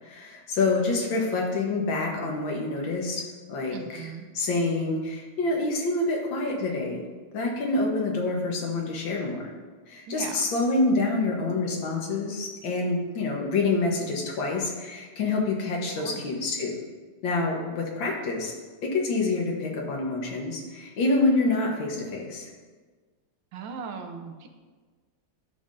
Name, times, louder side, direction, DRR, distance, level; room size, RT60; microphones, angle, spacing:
voice 1, 0.0-4.1 4.3-7.0 7.3-9.5 9.9-16.8 17.2-18.5 18.8-22.5, left 3 dB, 75° left, 0 dB, 1.9 m, -27 dB
voice 2, 3.7-4.3 10.1-10.5 16.0-16.3 23.5-24.5, right 5 dB, 75° right, 5 dB, 1.4 m, -38 dB
11.5 x 5.5 x 2.6 m, 1.4 s
omnidirectional pair, 2.1 m